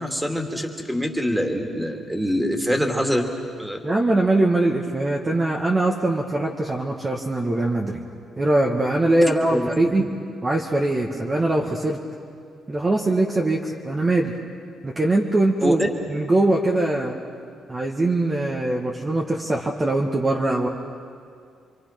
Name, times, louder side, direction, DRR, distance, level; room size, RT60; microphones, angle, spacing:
voice 1, 0.0-3.3 3.6-3.8 9.5-10.1 15.6-15.9, equal, 5° right, 3 dB, 2.8 m, -24 dB
voice 2, 3.8-8.0 8.4-10.1 10.4-12.0 12.7-14.3 14.8-15.8 16.1-17.2 17.7-20.7, right 2 dB, 25° right, -1 dB, 1.8 m, -22 dB
28.5 x 23.5 x 6.0 m, 2.3 s
cardioid pair, 90°, 0 cm